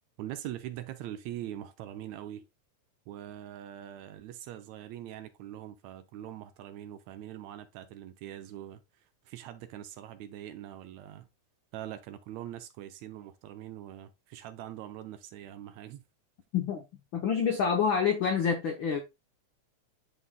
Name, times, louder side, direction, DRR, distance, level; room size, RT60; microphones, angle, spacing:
voice 1, 0.2-2.4 3.1-8.8 9.3-11.3 11.7-16.0, right 12 dB, 80° right, 1.8 m, -42 dB
voice 2, 16.5-16.8 17.1-19.0, left 6 dB, 85° left, 1.1 m, -27 dB
11.0 x 4.0 x 2.2 m
omnidirectional pair, 3.4 m